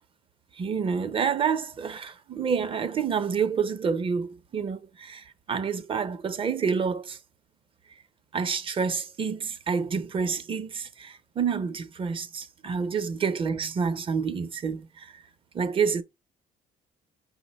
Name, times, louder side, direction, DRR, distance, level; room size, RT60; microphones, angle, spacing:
voice 1, 0.6-7.2 8.3-15.1 15.5-16.0, right 6 dB, 30° right, 0.5 m, -28 dB
5.3 x 2.1 x 4.0 m
cardioid pair, 110°, 17 cm